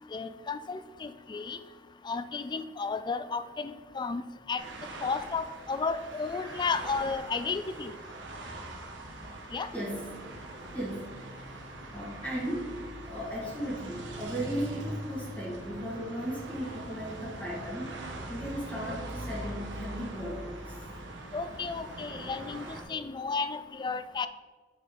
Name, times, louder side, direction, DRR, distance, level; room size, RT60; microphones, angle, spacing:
voice 1, 0.1-1.6 2.0-4.2 4.5-4.6 5.0-7.9 9.5-9.7 21.3-24.3, left 4 dB, 25° left, 12 dB, 0.3 m, -33 dB
sound 1, 4.6-22.8, right 1 dB, 85° right, 1.0 m, -42 dB
voice 2, 9.7-10.2 10.7-11.2 11.9-12.7 13.1-18.0 18.3-20.8, equal, 10° left, -5 dB, 1.9 m, -36 dB
7.3 x 4.3 x 3.9 m, 1.4 s
head